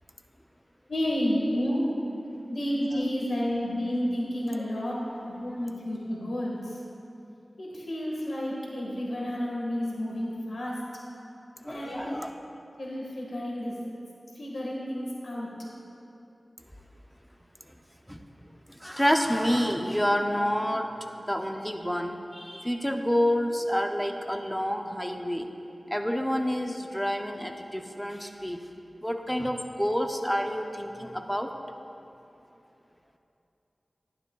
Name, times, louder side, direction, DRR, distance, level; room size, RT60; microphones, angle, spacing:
voice 1, 0.9-1.8 2.5-6.8 7.6-10.8 11.7-12.0 12.8-13.7 14.3-15.5, equal, 80° left, -4 dB, 1.6 m, -30 dB
voice 2, 11.6-12.3 18.1-18.2 18.8-20.9 21.3-25.5 25.9-28.6 29.0-31.5, equal, 5° left, 4 dB, 0.6 m, -28 dB
11.0 x 9.6 x 2.3 m, 2.8 s
wide cardioid pair, 60°, 0 cm